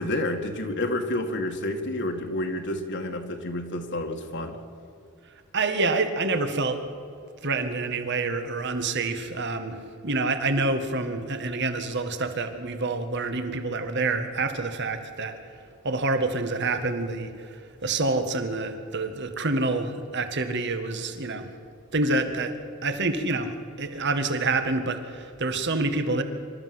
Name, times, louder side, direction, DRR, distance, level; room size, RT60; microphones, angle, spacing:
voice 1, 0.0-4.6, left 1 dB, 55° left, 4 dB, 2.1 m, -29 dB
voice 2, 5.5-6.8 7.4-15.4 15.8-21.6 21.9-26.2, right 3 dB, 55° right, 8 dB, 1.8 m, -27 dB
26.0 x 14.0 x 7.9 m, 2.4 s
head